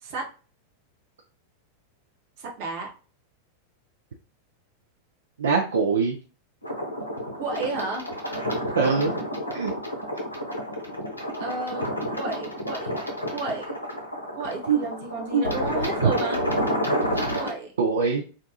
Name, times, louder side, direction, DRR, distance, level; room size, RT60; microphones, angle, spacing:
voice 1, 2.4-2.9 7.4-8.1 11.4-11.9 12.2-13.7 14.4-16.4 17.1-17.7, right 3 dB, 50° right, 1 dB, 0.8 m, -32 dB
voice 2, 5.4-6.2 8.8-9.1 9.5-9.7 14.7-14.8 15.3-15.4 16.0-16.1 17.8-18.2, right 5 dB, 65° right, 1 dB, 0.4 m, -22 dB
sound 1, 6.6-17.5, equal, 85° left, 0.6 m, -30 dB
2.4 x 2.2 x 2.7 m, 0.36 s
figure-of-eight pair, 90°, 0 cm